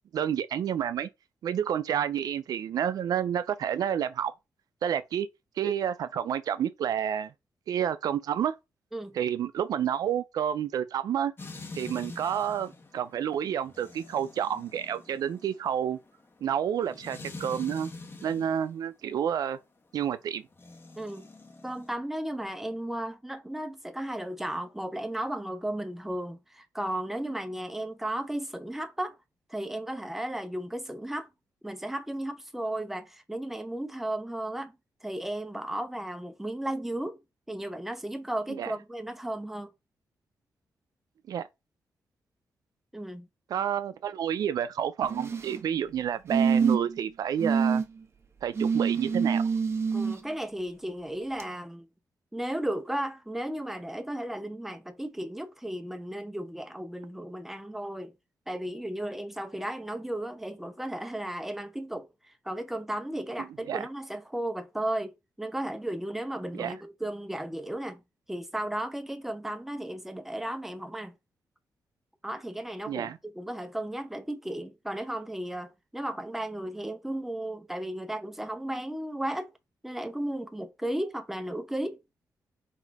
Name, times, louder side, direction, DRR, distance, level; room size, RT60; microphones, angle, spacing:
voice 1, 0.1-1.1 1.4-4.3 4.8-5.3 5.6-7.3 7.7-8.5 9.1-11.3 11.8-16.0 16.4-17.9 18.2-19.6 19.9-20.4 38.6-38.7 41.3-41.4 43.5-47.8 48.4-49.4 63.7-63.9 66.5-66.8 72.9-73.2, right 9 dB, 75° right, 0.4 m, -29 dB
sound 1, 11.4-18.6 20.5-21.9, left 3 dB, 35° left, 1.1 m, -45 dB
voice 2, 21.0-21.3 21.6-29.1 29.5-31.3 31.6-34.7 35.0-37.2 37.5-39.7 42.9-43.3 49.9-51.9 52.3-58.1 58.5-68.0 68.3-71.1 72.2-79.5 79.8-82.0, right 1 dB, 5° right, 0.8 m, -34 dB
sound 2, 45.0-45.6 46.3-47.0 47.4-47.8 48.6-50.2 51.4-51.5, right 6 dB, 40° right, 1.0 m, -26 dB
4.2 x 2.6 x 4.6 m
cardioid pair, 85°, 7 cm